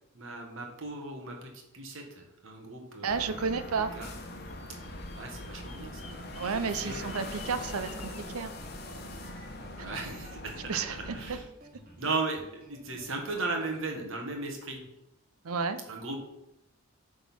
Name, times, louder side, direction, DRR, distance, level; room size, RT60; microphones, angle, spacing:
voice 1, 0.1-3.7 3.9-4.1 4.7-6.1 6.4-7.2 9.7-10.8 11.1-11.4 12.0-14.8 15.9-16.2, right 3 dB, 65° right, 2 dB, 1.5 m, -37 dB
sound 1, 3.0-11.4, left 1 dB, 45° left, 1.0 m, -42 dB
voice 2, 3.0-3.9 6.4-7.9 8.2-8.5 9.8-9.9 10.7-11.0 11.3-11.4 15.4-15.8, right 5 dB, 90° right, 11 dB, 0.6 m, -31 dB
Bird vocalization bird call bird song, 4.5-8.3, left 5 dB, 30° left, 0.7 m, -52 dB
sound 2, 5.9-13.8, right 1 dB, 40° right, 1.4 m, -54 dB
8.2 x 3.8 x 6.0 m, 0.87 s
head